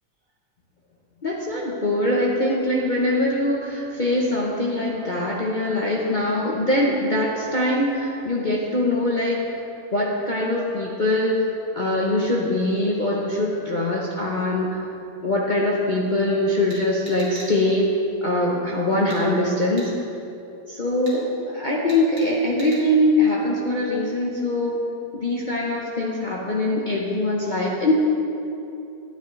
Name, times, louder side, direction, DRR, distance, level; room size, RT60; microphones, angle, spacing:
voice 1, 1.2-9.4 9.9-11.5 11.7-14.9 15.2-17.9 18.2-19.9 20.7-24.8 25.1-27.9, left 1 dB, 55° left, -4 dB, 0.5 m, -22 dB
sound 1, 16.7-17.5 19.1-19.2 19.8-19.9 21.1-21.2 21.9-22.3 22.6-22.8, right 1 dB, 55° right, 2.3 m, -40 dB
9.8 x 9.3 x 3.1 m, 2.8 s
omnidirectional pair, 2.0 m